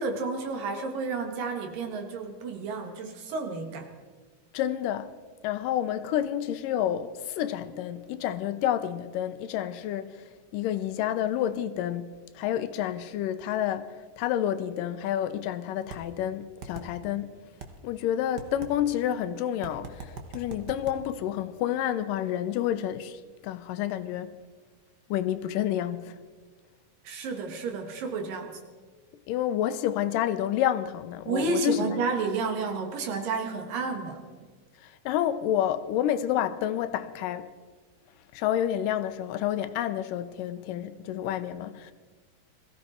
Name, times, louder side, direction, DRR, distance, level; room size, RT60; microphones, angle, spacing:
voice 1, 0.0-3.9 27.1-28.6 31.3-34.2, right 4 dB, 85° right, 3.4 m, -31 dB
voice 2, 4.5-5.1 5.4-17.4 17.8-24.3 25.1-26.2 29.3-31.8 34.8-37.5 38.3-41.9, left 11 dB, 80° left, 2.4 m, -29 dB
sound 1, 15.9-16.0 16.6-16.9 17.6-17.7 18.4-18.7 19.6-21.0, right 5 dB, 55° right, 1.1 m, -39 dB
22.0 x 15.0 x 4.3 m
omnidirectional pair, 3.8 m